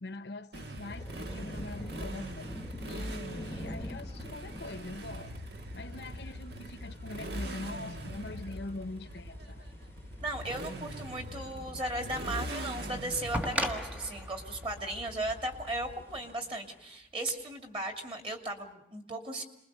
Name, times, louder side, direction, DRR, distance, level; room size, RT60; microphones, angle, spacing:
voice 1, 0.0-2.5 2.9-5.3 5.7-9.7, left 2 dB, 70° left, 0.9 m, -43 dB
Motorcycle, 0.5-16.3, right 1 dB, 65° right, 1.4 m, -42 dB
sound 1, 0.9-17.0, left 1 dB, 15° left, 0.9 m, -49 dB
voice 2, 10.2-19.4, right 1 dB, 30° right, 2.7 m, -36 dB
sound 2, 11.9-12.0 13.3-16.2 17.4-17.5, equal, 10° right, 1.5 m, -36 dB
27.5 x 21.0 x 6.7 m
head